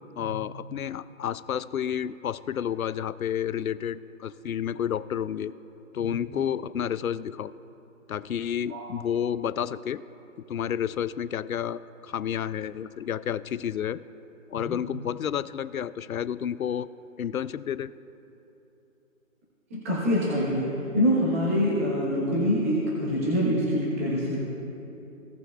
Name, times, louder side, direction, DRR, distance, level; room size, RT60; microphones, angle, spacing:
voice 1, 0.2-5.5 5.9-7.5 8.1-10.0 10.5-14.0 14.5-16.9 17.2-17.9, left 9 dB, 85° left, 16 dB, 0.5 m, -30 dB
voice 2, 19.7-20.7 20.9-24.4, equal, 10° right, -6 dB, 1.0 m, -25 dB
17.0 x 6.7 x 2.3 m, 3.0 s
hypercardioid pair, 165°, 41 cm